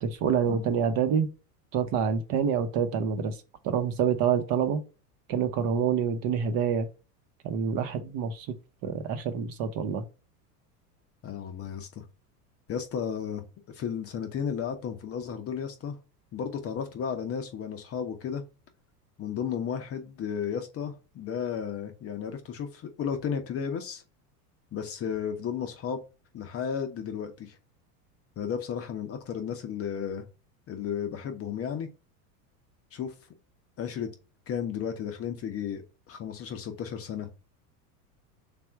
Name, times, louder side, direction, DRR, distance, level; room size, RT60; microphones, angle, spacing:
voice 1, 0.0-1.3 1.7-3.4 3.6-4.8 5.3-6.9 7.4-8.5 8.8-10.0, right 7 dB, 45° right, 0.9 m, -27 dB
voice 2, 11.2-12.0 12.7-16.0 16.3-18.4 19.2-24.0 24.7-26.0 26.3-27.6 28.4-30.3 30.7-31.9 32.9-33.1 33.8-34.1 34.5-37.4, left 7 dB, 30° left, 0.7 m, -33 dB
3.4 x 2.5 x 4.5 m
hypercardioid pair, 95°, 47 cm